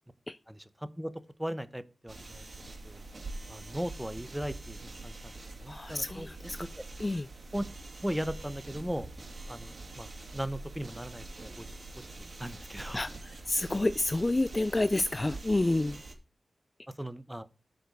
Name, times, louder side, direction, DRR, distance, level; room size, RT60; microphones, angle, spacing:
voice 1, 0.5-1.1 1.4-2.5 2.8-3.0 3.5-5.3 5.6-6.8 7.5-7.6 8.0-9.1 9.5-11.8 12.4-13.0 17.0-17.5, equal, 5° right, 14 dB, 0.8 m, -38 dB
sound 1, 2.1-16.1, right 2 dB, 45° right, 2.5 m, -45 dB
voice 2, 5.7-6.6 7.0-7.3 12.9-13.1 13.5-16.0, left 2 dB, 25° left, 15 dB, 0.4 m, -29 dB
8.8 x 5.1 x 6.5 m, 0.33 s
wide cardioid pair, 110°, 0 cm